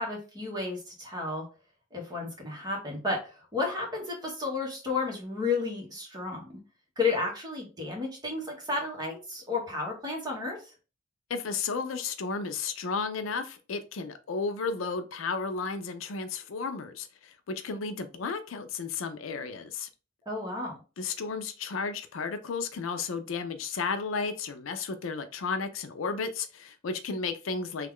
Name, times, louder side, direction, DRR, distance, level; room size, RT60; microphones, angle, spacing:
voice 1, 0.0-1.4 1.9-6.6 7.0-10.7 20.2-20.8, left 3 dB, 20° right, 1.2 m, -32 dB
voice 2, 11.3-19.9 21.0-27.9, left 4 dB, 75° left, 0.5 m, -33 dB
3.1 x 2.3 x 3.5 m
head